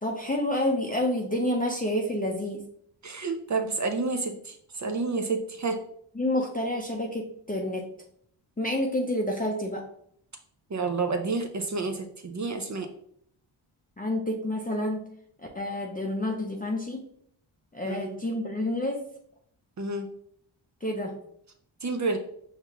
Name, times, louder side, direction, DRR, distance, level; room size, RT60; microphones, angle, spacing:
voice 1, 0.0-2.6 6.2-7.9 8.6-9.9 14.0-15.0 15.5-17.0 17.7-19.1 20.8-21.2, left 1 dB, 20° left, 0 dB, 0.6 m, -29 dB
voice 2, 3.0-5.8 10.7-12.9 17.8-18.2 19.8-20.1 21.8-22.2, right 3 dB, 35° right, 5 dB, 0.5 m, -29 dB
5.6 x 2.4 x 2.9 m, 0.67 s
cardioid pair, 55°, 49 cm